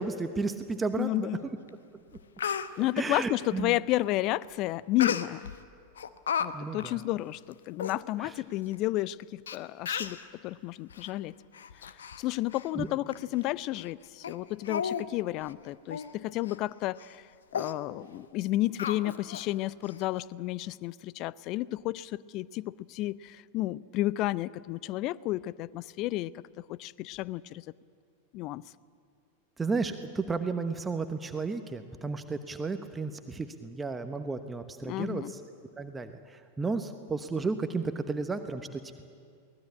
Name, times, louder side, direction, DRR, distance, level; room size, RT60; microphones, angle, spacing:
voice 1, 0.0-1.3 3.0-3.8 6.5-7.0 8.2-8.3 12.8-12.9 29.6-35.2 35.8-39.0, right 4 dB, 15° right, 8 dB, 1.0 m, -33 dB
voice 2, 1.0-1.4 2.8-5.5 6.4-10.2 10.4-11.3 12.2-17.3 17.5-26.4 26.7-27.6 28.3-28.6 34.8-35.4, left 16 dB, 40° left, 21 dB, 0.5 m, -32 dB
Speech, 1.7-1.8 2.1-2.7 5.0-5.6 6.0-6.5 6.8-7.0 7.5-7.6 7.8-8.0 8.7-8.8 9.5-9.6 9.9-10.2 10.9-11.1 11.5-12.2 12.5-12.7 13.1-13.2 13.8-13.9 14.2-14.4 14.7-15.1 15.4-15.5 15.9-16.1 16.5-16.6 17.0-17.2 17.5-17.7 18.8-19.5 19.8-19.9, left 7 dB, 65° left, 1.0 m, -33 dB
23.0 x 19.0 x 8.6 m, 2.2 s
figure-of-eight pair, 90°, 0 cm